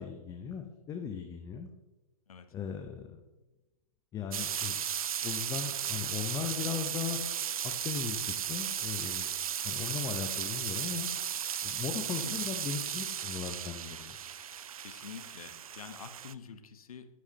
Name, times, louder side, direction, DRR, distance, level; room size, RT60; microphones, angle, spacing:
voice 1, 0.0-1.7 2.5-3.2 4.1-4.8 5.2-7.2 7.8-9.3 9.6-11.1 11.6-14.2, left 7 dB, 15° left, 5 dB, 0.7 m, -38 dB
sound 1, 4.3-16.3, right 9 dB, 70° right, 0.5 m, -35 dB
voice 2, 12.1-12.5 14.8-17.1, left 7 dB, 70° left, 10 dB, 1.0 m, -47 dB
11.5 x 8.5 x 2.8 m, 1.1 s
hypercardioid pair, 120°, 19 cm